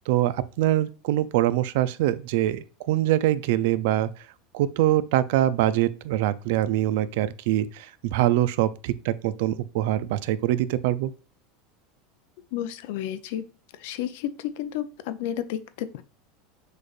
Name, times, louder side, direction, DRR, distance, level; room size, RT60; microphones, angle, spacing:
voice 1, 0.1-4.1 4.5-11.1, right 13 dB, 70° right, 0.4 m, -24 dB
voice 2, 12.5-13.4 13.8-16.0, left 11 dB, 70° left, 0.5 m, -31 dB
6.3 x 3.3 x 2.4 m
supercardioid pair, 145°, 0 cm